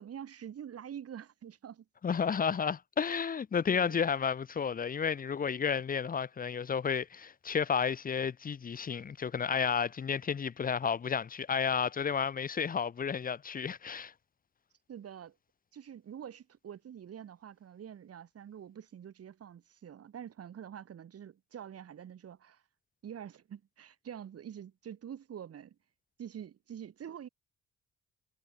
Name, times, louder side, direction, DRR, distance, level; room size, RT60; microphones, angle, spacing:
voice 1, 0.0-1.8 3.7-4.0 14.9-15.3 15.7-22.6 23.0-25.8 26.2-27.3, right 9 dB, 50° right, 1.8 m, -46 dB
voice 2, 2.0-14.1, left 6 dB, 30° left, 0.7 m, -32 dB
cardioid pair, 90°, 30 cm